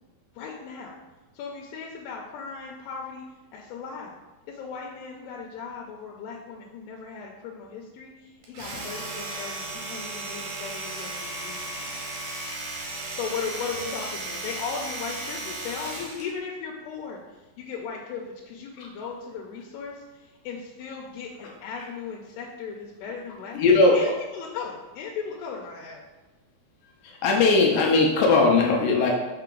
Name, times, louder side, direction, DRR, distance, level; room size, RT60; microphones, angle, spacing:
voice 1, 0.3-1.0 1.3-3.2 3.5-4.1 4.5-12.0 13.1-17.2 17.6-23.6 23.9-26.0, left 5 dB, 90° left, -1 dB, 2.8 m, -37 dB
Domestic sounds home sounds, 8.4-16.3, right 2 dB, 65° right, 2.0 m, -35 dB
voice 2, 23.5-24.0 27.0-29.1, left 3 dB, 75° left, 0 dB, 2.2 m, -19 dB
5.7 x 5.1 x 3.8 m, 1.1 s
omnidirectional pair, 4.7 m